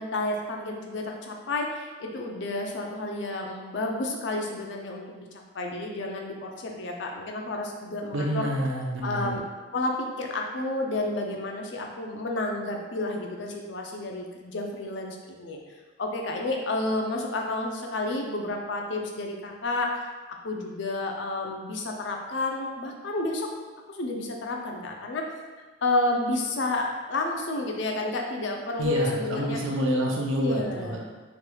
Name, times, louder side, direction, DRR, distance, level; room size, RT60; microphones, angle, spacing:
voice 1, 0.0-5.3 5.5-8.5 9.0-9.4 9.7-15.6 16.0-19.9 20.4-23.5 23.9-25.3 25.8-29.6 30.4-30.9, left 2 dB, 60° left, 1 dB, 0.4 m, -30 dB
voice 2, 8.1-9.3 28.8-31.0, right 1 dB, 85° right, -1 dB, 0.6 m, -28 dB
3.2 x 3.0 x 2.2 m, 1.3 s
head